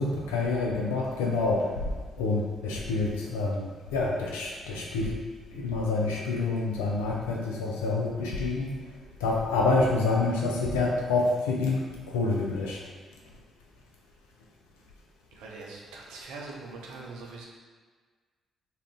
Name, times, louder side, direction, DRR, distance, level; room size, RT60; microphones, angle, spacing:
voice 1, 0.0-5.2 5.5-8.8 9.2-12.8, left 3 dB, 75° left, -2 dB, 0.4 m, -27 dB
voice 2, 15.3-17.4, right 3 dB, 70° right, -2 dB, 0.5 m, -42 dB
2.5 x 2.2 x 3.3 m, 1.5 s
figure-of-eight pair, 40°, 0 cm